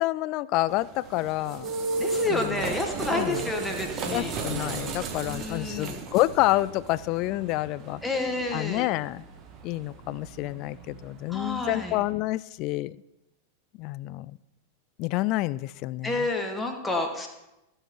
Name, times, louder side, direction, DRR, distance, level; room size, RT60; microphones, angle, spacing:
voice 1, 0.0-1.7 2.3-2.7 3.1-3.5 4.1-8.0 8.5-9.2 9.6-13.0 13.8-14.4 15.0-16.3, left 18 dB, 40° left, 20 dB, 0.3 m, -28 dB
sound 1, 0.7-12.1, right 3 dB, 30° right, 1.4 m, -36 dB
voice 2, 2.0-4.3 5.3-6.0 8.0-8.9 11.3-12.0 16.0-17.3, left 2 dB, 10° left, 2 dB, 1.8 m, -29 dB
15.0 x 6.8 x 4.3 m, 0.93 s
figure-of-eight pair, 90°, 0 cm